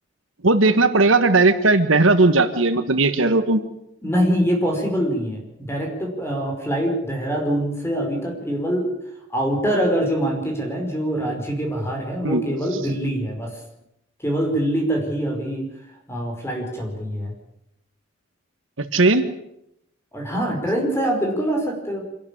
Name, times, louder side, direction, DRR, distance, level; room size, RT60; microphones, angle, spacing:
voice 1, 0.4-3.6 12.2-12.4 18.8-19.2, right 3 dB, 85° right, 9 dB, 1.5 m, -17 dB
voice 2, 4.0-8.9 9.3-13.5 14.2-15.7 16.1-17.3 20.1-22.0, equal, 15° left, 2 dB, 5.2 m, -24 dB
25.5 x 12.0 x 8.7 m, 0.81 s
head